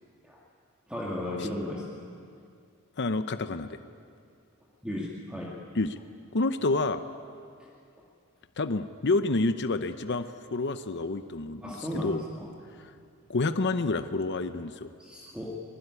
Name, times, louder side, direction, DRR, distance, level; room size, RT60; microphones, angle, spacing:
voice 1, 0.9-1.8 4.8-5.5 11.6-12.5 15.0-15.6, left 1 dB, 5° right, -4 dB, 2.3 m, -35 dB
voice 2, 3.0-3.8 5.7-6.0 6.3-7.0 8.6-12.2 12.7-12.9 13.3-14.9, left 3 dB, 50° left, 10 dB, 0.8 m, -29 dB
25.0 x 20.0 x 9.7 m, 2.4 s
head